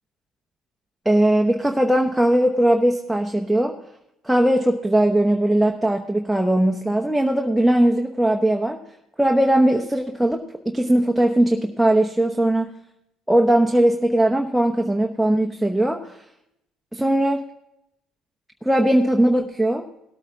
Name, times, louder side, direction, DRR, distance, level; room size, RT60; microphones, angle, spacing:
voice 1, 1.0-3.8 4.2-8.8 9.2-12.7 13.3-16.1 16.9-17.4 18.6-19.9, right 1 dB, ahead, 2 dB, 0.9 m, -19 dB
18.0 x 8.7 x 3.7 m, 0.81 s
supercardioid pair, 85°, 0 cm